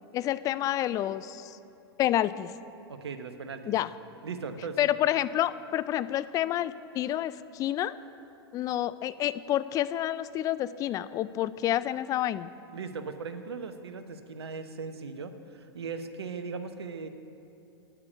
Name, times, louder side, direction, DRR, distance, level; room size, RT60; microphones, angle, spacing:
voice 1, 0.1-1.6 2.0-2.5 3.7-3.9 4.8-8.0 8.5-12.5, left 12 dB, 25° left, 15 dB, 0.3 m, -29 dB
voice 2, 2.9-3.7 4.2-4.9 12.7-17.1, right 5 dB, 75° right, 9 dB, 0.9 m, -38 dB
9.7 x 8.9 x 8.2 m, 2.8 s
hypercardioid pair, 105°, 14 cm